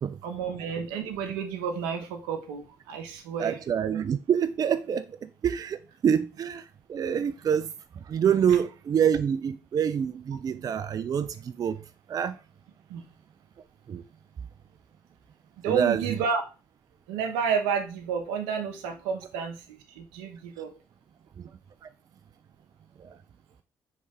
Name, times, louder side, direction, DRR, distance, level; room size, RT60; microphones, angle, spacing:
voice 1, 0.2-3.6 6.1-6.3 12.9-13.1 15.6-16.4 17.1-20.7, right 6 dB, 85° right, 0.7 m, -31 dB
voice 2, 3.4-7.7 8.0-11.8 12.1-12.4 13.9-14.0 15.7-16.0 21.4-21.5 21.8-21.9 23.0-23.2, right 8 dB, 45° right, 0.3 m, -27 dB
4.2 x 3.3 x 3.3 m
hypercardioid pair, 50°, 9 cm